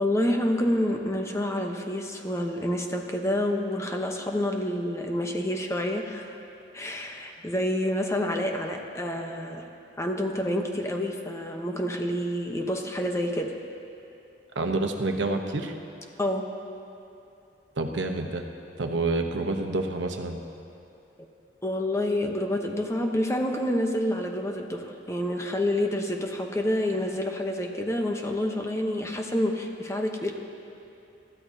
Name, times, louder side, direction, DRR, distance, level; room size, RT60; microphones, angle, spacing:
voice 1, 0.0-6.4 6.7-9.6 10.0-13.5 16.2-16.5 21.6-30.3, left 1 dB, 15° left, 3 dB, 0.9 m, -28 dB
voice 2, 14.5-15.7 17.8-18.4 18.8-20.4, right 2 dB, 90° right, 4 dB, 1.0 m, -28 dB
23.0 x 13.5 x 2.8 m, 2.8 s
head